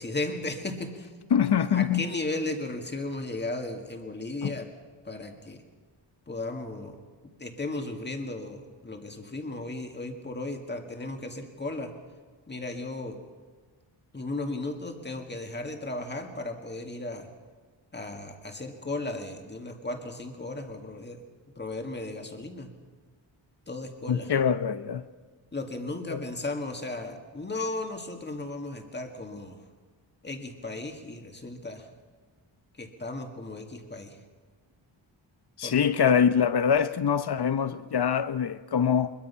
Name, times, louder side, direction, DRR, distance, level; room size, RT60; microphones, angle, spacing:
voice 1, 0.0-1.1 1.6-4.7 5.0-5.6 6.3-7.0 7.2-11.9 12.5-13.2 14.1-17.3 17.9-21.2 21.6-22.7 23.7-24.4 25.5-29.6 30.2-31.9 32.7-34.2 35.6-35.9, left 2 dB, 20° left, 2.0 m, -35 dB
voice 2, 1.3-2.0 4.4-4.5 24.1-25.0 26.1-26.2 35.6-39.1, left 7 dB, 55° left, 0.9 m, -24 dB
23.0 x 22.0 x 5.6 m
wide cardioid pair, 165°, 47 cm